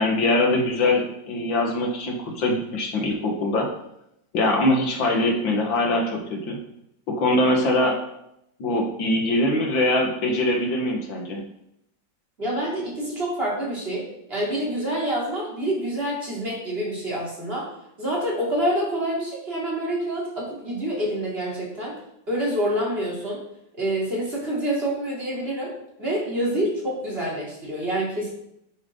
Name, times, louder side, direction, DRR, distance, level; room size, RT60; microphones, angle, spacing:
voice 1, 0.0-3.7 4.3-6.6 7.1-8.0 8.6-11.4, left 1 dB, 90° left, 2 dB, 2.4 m, -22 dB
voice 2, 12.4-17.7 18.0-21.9 22.3-23.4 23.8-28.3, right 1 dB, 30° right, -5 dB, 3.9 m, -27 dB
9.4 x 9.0 x 4.0 m, 0.79 s
omnidirectional pair, 2.0 m